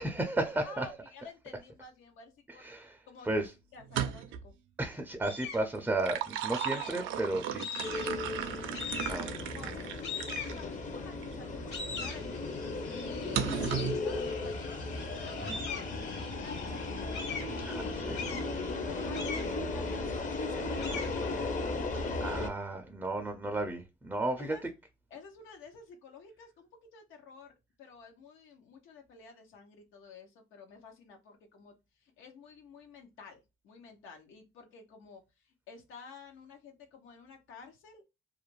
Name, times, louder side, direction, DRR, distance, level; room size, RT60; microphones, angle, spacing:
voice 1, 0.0-0.9 2.6-3.5 4.8-8.0 9.1-9.6 15.4-15.6 17.6-18.2 22.2-24.6, right 2 dB, 10° right, 0.4 m, -34 dB
voice 2, 0.5-2.7 3.1-3.3 3.7-4.5 9.5-14.8 15.2-16.0 16.3-16.9 18.8-22.6 24.4-24.6 25.1-38.0, left 5 dB, 85° left, 0.7 m, -52 dB
sound 1, 3.8-4.5 5.7-10.6 11.2-11.3 13.3-14.0, right 9 dB, 80° right, 0.4 m, -35 dB
sound 2, 5.2-5.7 6.5-7.2 7.6-8.3 8.7-9.4 10.0-11.0 11.4-22.2, left 5 dB, 60° left, 1.1 m, -43 dB
sound 3, 7.8-22.5, left 3 dB, 40° left, 0.6 m, -36 dB
2.4 x 2.1 x 3.0 m
cardioid pair, 90°, 20 cm